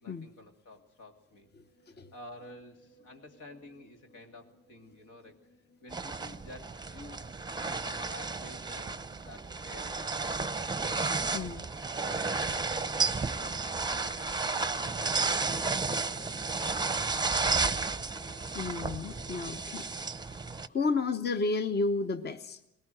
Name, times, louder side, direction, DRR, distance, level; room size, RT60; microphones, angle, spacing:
voice 1, 0.0-1.5 1.9-5.4 5.8-7.2 7.6-10.2 11.1-11.6 12.0-15.5 15.9-17.0 20.8-21.0, left 1 dB, 75° left, 3 dB, 2.5 m, -51 dB
sound 1, 1.0-20.3, left 3 dB, 55° left, 3.6 m, -58 dB
sound 2, 5.9-20.7, right 4 dB, 15° right, 0.7 m, -32 dB
voice 2, 18.5-19.9 20.7-22.7, left 3 dB, 35° left, 9 dB, 0.9 m, -31 dB
20.0 x 18.0 x 7.7 m, 0.83 s
cardioid pair, 90°, 30 cm